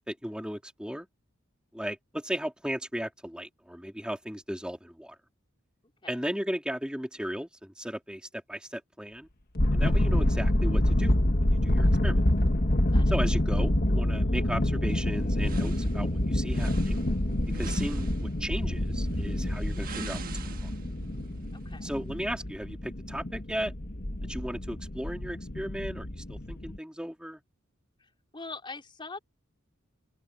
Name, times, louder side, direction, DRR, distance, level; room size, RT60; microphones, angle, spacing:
voice 1, 0.1-1.1 1.7-5.2 6.1-9.3 9.7-11.1 11.4-12.2 13.1-17.0 17.5-20.7 21.8-23.7 24.3-27.4, equal, 5° right, 3.5 m, -36 dB
sound 1, 9.6-26.8, left 1 dB, 45° left, 1.6 m, -27 dB
sound 2, 14.9-22.5, right 4 dB, 45° right, 1.4 m, -45 dB
voice 2, 21.5-21.9 28.0-29.2, left 3 dB, 25° left, 4.4 m, -43 dB
open air
head